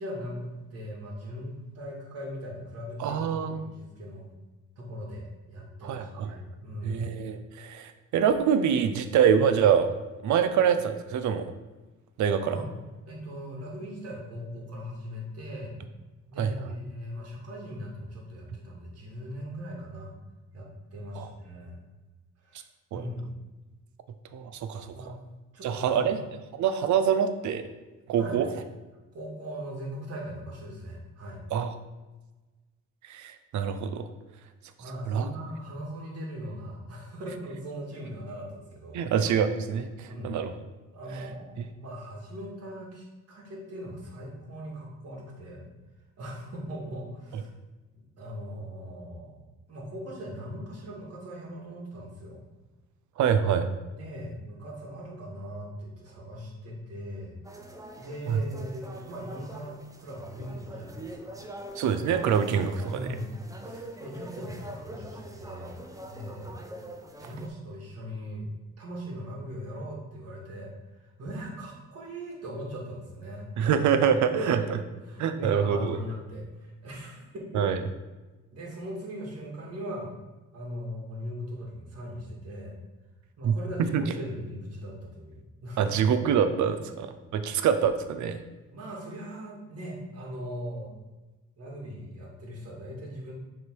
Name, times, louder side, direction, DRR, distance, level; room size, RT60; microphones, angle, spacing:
voice 1, 0.0-3.3 3.5-4.3 4.8-7.1 12.4-12.7 13.1-15.8 16.3-20.1 20.5-21.8 22.4-22.7 22.9-23.3 24.9-25.2 25.5-26.2 28.2-28.5 29.1-31.4 34.8-39.1 40.1-40.4 40.9-45.7 46.2-47.5 48.2-49.4 49.7-52.4 53.9-57.3 58.0-61.4 62.9-66.6 67.2-68.5 68.8-73.7 74.3-74.7 75.0-77.7 78.5-80.1 80.5-82.8 83.4-85.9 86.7-86.8 88.7-90.9 91.6-93.3, equal, 55° right, -2 dB, 2.0 m, -39 dB
voice 2, 3.0-3.6 5.8-6.3 6.8-9.9 10.2-11.4 12.2-12.6 16.4-16.5 21.2-21.3 22.9-23.0 24.3-25.2 25.6-26.2 26.6-27.7 28.1-28.5 31.5-31.7 33.0-34.1 35.1-35.3 38.9-40.5 53.2-53.7 58.3-58.4 61.8-63.1 73.6-74.6 75.2-76.0 77.5-77.8 83.4-84.0 85.8-86.7 87.3-88.4, right 7 dB, 70° right, 10 dB, 0.6 m, -25 dB
sound 1, 57.4-67.5, right 1 dB, 10° right, 0.7 m, -44 dB
6.5 x 3.6 x 4.7 m, 1.2 s
cardioid pair, 90°, 30 cm